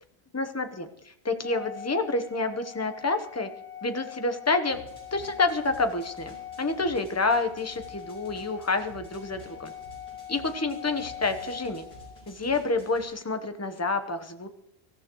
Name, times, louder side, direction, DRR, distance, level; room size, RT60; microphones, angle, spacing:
voice 1, 0.3-0.9 1.2-3.5 3.8-4.8 5.1-9.7 10.3-11.9 12.3-14.5, left 3 dB, 15° left, 7 dB, 0.9 m, -28 dB
Organ, 1.4-12.3, left 9 dB, 15° right, 1.5 m, -43 dB
sound 1, 4.7-13.0, right 1 dB, 65° left, 6.8 m, -51 dB
25.0 x 14.0 x 3.1 m, 0.81 s
omnidirectional pair, 1.1 m